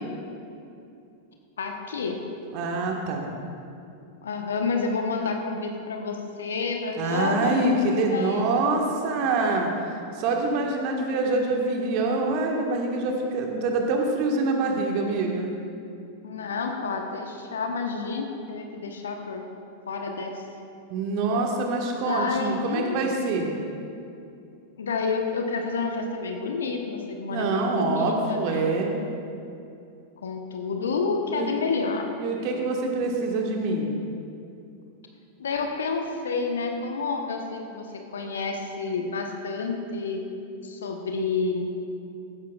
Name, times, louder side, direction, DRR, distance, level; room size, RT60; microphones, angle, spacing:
voice 1, 1.6-2.2 4.2-8.5 16.2-19.5 19.9-20.4 22.1-23.0 24.8-28.7 30.2-32.1 35.4-40.2 40.6-41.8, left 4 dB, 65° left, 3 dB, 1.1 m, -29 dB
voice 2, 2.5-3.3 7.0-9.7 10.2-15.5 20.9-23.5 27.3-29.0 31.3-31.5 32.2-33.9, right 3 dB, 45° right, 1 dB, 1.6 m, -25 dB
15.5 x 13.5 x 2.4 m, 2.6 s
figure-of-eight pair, 90°, 0 cm